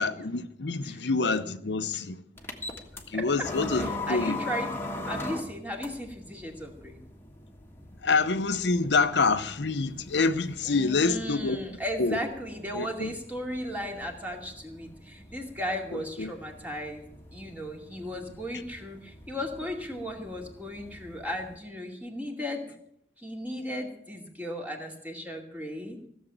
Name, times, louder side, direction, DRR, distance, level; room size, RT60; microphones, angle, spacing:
voice 1, 0.0-2.2 3.1-4.4 8.0-11.6 12.0-12.2 12.7-13.1 15.9-16.3, left 4 dB, 80° left, 0.8 m, -27 dB
sound 1, 2.4-21.6, left 2 dB, 15° left, 1.7 m, -42 dB
voice 2, 3.1-3.5 3.7-7.0 10.6-17.1 17.3-22.6 23.2-26.0, equal, 10° right, 2.4 m, -36 dB
16.5 x 7.3 x 9.1 m
head